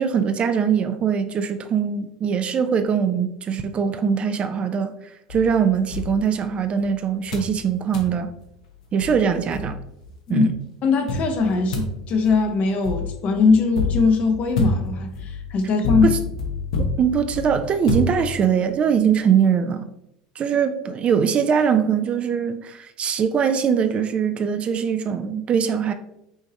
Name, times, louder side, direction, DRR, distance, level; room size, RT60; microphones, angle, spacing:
voice 1, 0.0-4.9 5.3-8.3 8.9-9.8 10.3-10.6 16.0-16.2 17.0-19.9 20.4-25.9, right 7 dB, 35° right, 9 dB, 0.4 m, -22 dB
sound 1, 5.3-6.9 7.3-7.6 7.9-8.2 8.7-8.8 9.0-10.1 11.1-18.7, left 3 dB, 70° left, 0.9 m, -28 dB
voice 2, 10.8-16.2, left 4 dB, 45° left, 5 dB, 0.9 m, -20 dB
5.6 x 2.8 x 2.9 m, 0.81 s
hypercardioid pair, 80°, 3 cm